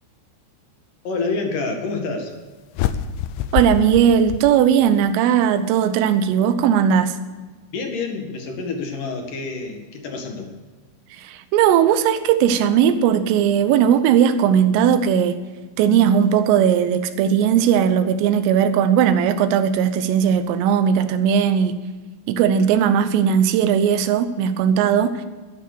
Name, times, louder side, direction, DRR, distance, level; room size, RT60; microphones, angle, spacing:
voice 1, 1.0-2.3 7.7-10.5, left 3 dB, 55° left, 2.7 m, -27 dB
sound 1, 2.7-5.1, left 10 dB, 80° left, 2.9 m, -26 dB
voice 2, 3.5-7.2 11.2-15.4 15.8-21.8 22.3-25.1, right 8 dB, 80° right, 3.6 m, -18 dB
12.5 x 12.5 x 6.7 m
omnidirectional pair, 5.9 m